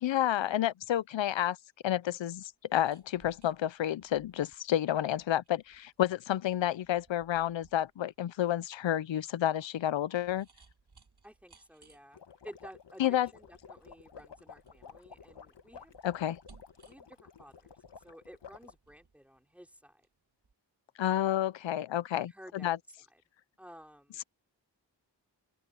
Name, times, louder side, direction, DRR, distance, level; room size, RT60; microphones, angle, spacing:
voice 1, 0.0-1.6 1.8-10.5 13.0-13.3 16.0-16.4 21.0-22.8, left 12 dB, 90° left, 0.6 m, -30 dB
sound 1, 2.5-20.1 20.4-20.5, right 4 dB, 60° right, 7.5 m, -64 dB
voice 2, 11.2-16.4 16.8-20.1 22.1-22.7 23.1-23.2 23.6-24.2, equal, 5° right, 4.4 m, -53 dB
sound 2, 12.1-18.7, left 6 dB, 70° left, 1.5 m, -52 dB
open air
cardioid pair, 45°, 44 cm